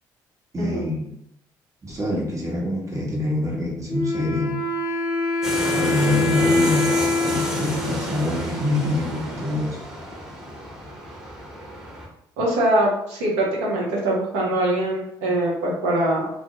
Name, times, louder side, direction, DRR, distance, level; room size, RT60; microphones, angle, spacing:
voice 1, 0.5-1.1 1.8-4.6 5.7-9.8, left 2 dB, 30° right, -3 dB, 1.0 m, -26 dB
Wind instrument woodwind instrument, 3.9-9.4, left 2 dB, 40° left, 0.9 m, -25 dB
sound 1, 5.4-12.1, equal, 5° right, 1.0 m, -30 dB
voice 2, 12.4-16.3, right 1 dB, 75° right, -3 dB, 0.7 m, -23 dB
2.1 x 2.1 x 2.9 m, 0.76 s
hypercardioid pair, 50°, 11 cm